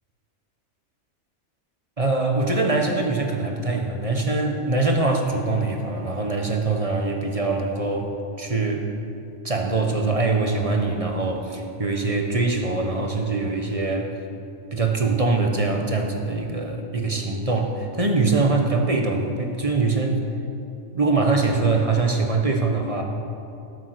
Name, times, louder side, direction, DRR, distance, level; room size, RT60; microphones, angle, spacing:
voice 1, 2.0-8.1 8.4-8.8 9.4-14.1 14.7-20.2 20.9-23.0, right 3 dB, 30° right, 2 dB, 1.0 m, -23 dB
12.5 x 8.7 x 6.6 m, 2.7 s
omnidirectional pair, 1.4 m